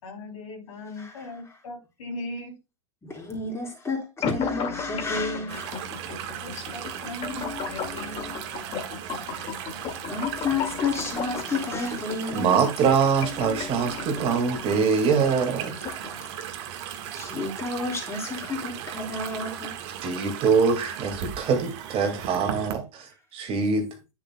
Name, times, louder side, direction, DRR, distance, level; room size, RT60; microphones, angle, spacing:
voice 1, 0.0-2.6 6.4-8.4, left 2 dB, 80° left, 3.1 m, -39 dB
voice 2, 3.0-5.8 9.3-9.5 10.1-12.6 17.1-19.7, left 3 dB, 15° left, 3.7 m, -31 dB
sound 1, 4.2-16.2, left 6 dB, 35° left, 2.0 m, -36 dB
sound 2, 5.5-22.8, right 10 dB, 55° right, 1.5 m, -37 dB
voice 3, 12.3-15.7 20.0-23.9, right 5 dB, 35° right, 2.0 m, -24 dB
9.9 x 6.8 x 2.2 m
hypercardioid pair, 115°, 17 cm